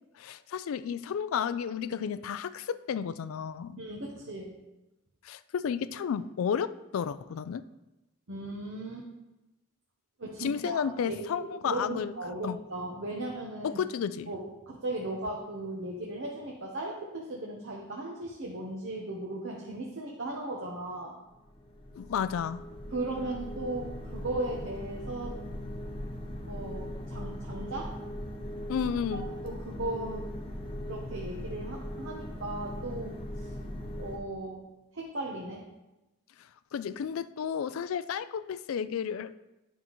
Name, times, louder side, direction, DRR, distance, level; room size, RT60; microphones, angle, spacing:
voice 1, 0.2-3.8 5.2-7.6 10.4-12.1 12.4-12.6 13.6-14.3 22.0-22.6 28.7-29.2 36.7-39.3, left 7 dB, 75° left, 15 dB, 0.3 m, -32 dB
voice 2, 3.8-4.6 8.3-9.1 10.2-13.8 14.3-21.2 22.9-25.4 26.5-27.9 29.1-30.3 30.8-33.2 33.9-34.6 34.9-35.6, right 2 dB, 60° right, -1 dB, 0.9 m, -37 dB
sound 1, 21.4-34.2, left 1 dB, 25° left, 0.7 m, -39 dB
9.9 x 5.5 x 3.1 m, 1.0 s
head